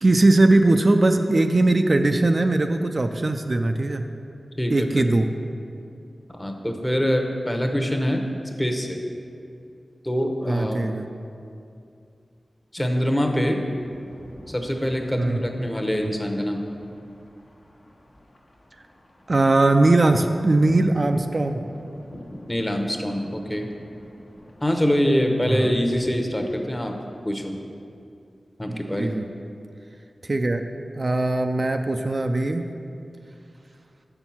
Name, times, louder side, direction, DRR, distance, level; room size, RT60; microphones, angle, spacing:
voice 1, 0.0-4.0 4.7-5.3 10.5-11.1 15.2-15.4 19.3-21.6 25.5-25.7 28.7-29.2 30.3-30.6 31.0-32.6, right 2 dB, 50° right, 6 dB, 0.3 m, -20 dB
voice 2, 4.6-5.0 6.4-8.2 8.6-9.0 10.0-10.9 12.7-13.6 14.5-16.6 22.5-23.7 24.6-26.9 27.2-27.6 28.6-29.2, equal, 20° left, 3 dB, 0.9 m, -24 dB
sound 1, 13.7-26.2, left 1 dB, 55° left, 1.0 m, -46 dB
6.7 x 4.5 x 5.7 m, 2.5 s
cardioid pair, 45°, 0 cm